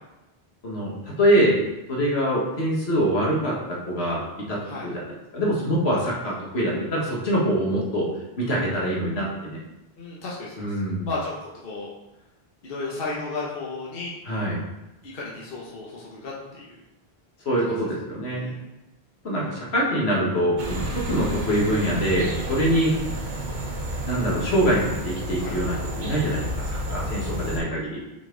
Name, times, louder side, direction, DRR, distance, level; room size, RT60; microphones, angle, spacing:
voice 1, 0.6-1.5 1.9-4.2 4.5-5.0 5.3-8.1 8.4-9.6 10.6-11.1 14.3-14.6 17.5-18.5 19.2-22.9 24.1-28.0, equal, 85° left, -4 dB, 1.8 m, -24 dB
voice 2, 10.0-10.8 11.1-11.9 12.6-14.2 15.0-16.8 18.3-18.6 25.3-25.6, left 3 dB, 65° left, -5 dB, 1.2 m, -34 dB
sound 1, 20.6-27.6, right 1 dB, 50° right, 1.0 m, -31 dB
6.1 x 4.1 x 3.8 m, 0.99 s
omnidirectional pair, 1.1 m